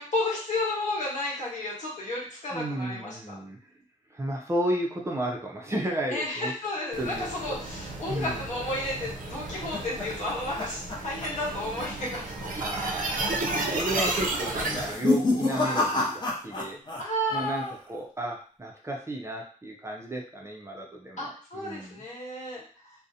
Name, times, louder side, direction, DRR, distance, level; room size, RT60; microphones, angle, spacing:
voice 1, 0.0-3.2 6.1-12.6 13.2-13.9 17.0-17.7 21.2-22.6 22.8-22.9, left 1 dB, 65° left, -5 dB, 1.0 m, -32 dB
voice 2, 2.5-3.6 4.1-6.5 7.0-7.6 8.1-8.4 12.6-16.8 17.3-22.0, right 1 dB, 20° right, -1 dB, 0.4 m, -33 dB
sound 1, 6.9-15.0, right 2 dB, 90° right, 0.5 m, -33 dB
sound 2, 9.0-11.5 11.8-12.2 12.5-12.6 13.3-13.7 14.6-17.0 17.3-17.9, left 2 dB, 35° left, 0.5 m, -29 dB
2.4 x 2.0 x 2.6 m, 0.43 s
wide cardioid pair, 170°, 13 cm